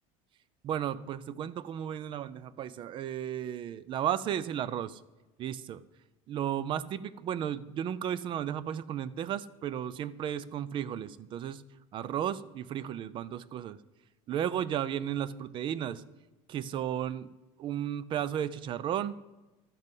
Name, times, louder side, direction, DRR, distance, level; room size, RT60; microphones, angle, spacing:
voice 1, 0.6-5.0 5.4-5.8 6.3-11.6 11.9-13.8 14.3-16.0 16.5-17.3 17.6-19.2, right 10 dB, 35° right, 18 dB, 0.4 m, -34 dB
12.0 x 8.1 x 5.3 m, 1.1 s
cardioid pair, 145°, 15 cm